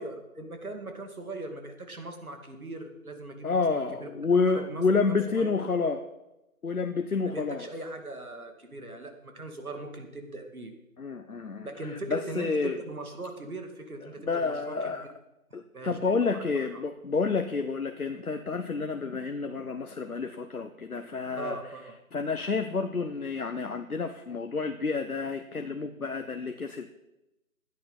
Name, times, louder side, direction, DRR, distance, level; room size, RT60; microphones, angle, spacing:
voice 1, 0.0-4.1 4.5-5.8 7.2-10.7 11.6-15.0 15.7-16.0 16.3-16.8 21.4-21.9, right 2 dB, 75° right, 5 dB, 2.4 m, -40 dB
voice 2, 3.4-6.0 6.6-7.7 11.0-12.8 14.0-15.1 15.5-21.6 22.1-26.9, left 4 dB, 75° left, 7 dB, 1.1 m, -29 dB
15.5 x 10.5 x 4.1 m, 0.94 s
figure-of-eight pair, 155°, 44 cm